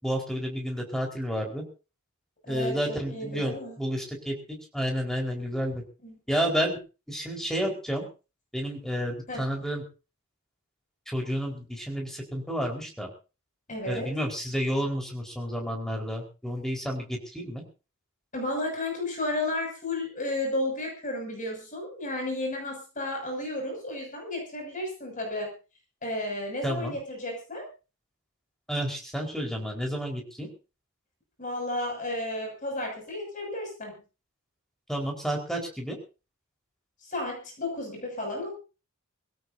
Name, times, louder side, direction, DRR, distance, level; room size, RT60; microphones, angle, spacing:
voice 1, 0.0-1.6 2.5-4.3 4.7-5.8 6.3-6.8 7.1-8.1 8.5-9.8 11.1-13.1 13.8-17.6 26.6-26.9 28.7-30.5 34.9-36.0, equal, ahead, 1 dB, 4.6 m, -30 dB
voice 2, 2.4-3.8 6.0-6.2 9.3-9.4 13.7-14.1 18.3-25.5 26.0-27.7 31.4-34.0 37.0-38.5, left 1 dB, 40° left, 2 dB, 6.9 m, -33 dB
24.0 x 17.0 x 2.8 m, 0.33 s
head